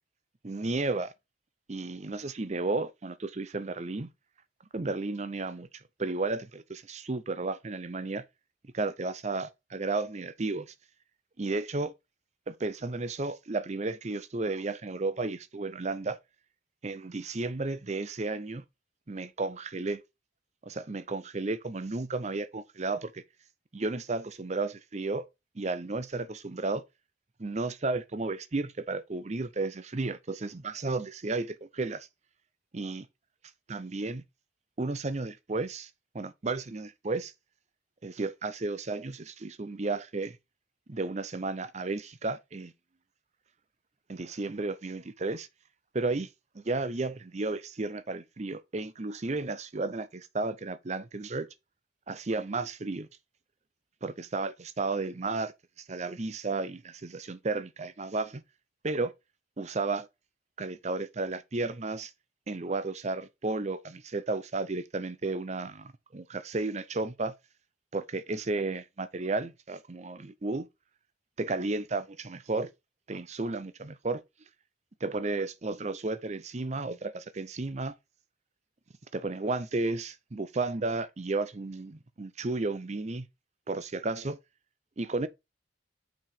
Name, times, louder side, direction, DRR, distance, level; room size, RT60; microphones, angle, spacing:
voice 1, 0.4-1.1 1.7-4.1 4.7-5.7 6.0-8.2 8.7-10.7 11.4-11.9 12.5-16.2 16.8-18.6 19.1-20.0 20.6-23.2 23.7-25.2 25.6-26.8 27.4-32.1 32.7-33.1 33.7-34.2 34.8-35.9 36.1-37.3 38.0-40.4 40.9-42.7 44.1-45.5 45.9-46.3 46.5-51.5 52.1-53.1 54.0-55.5 55.9-58.4 58.8-59.1 59.6-60.1 60.6-62.1 62.5-67.3 67.9-70.7 71.4-72.7 73.1-74.2 75.0-77.9 79.1-83.3 83.7-84.4 85.0-85.3, right 3 dB, 35° right, 0.6 m, -33 dB
6.1 x 5.0 x 4.4 m
head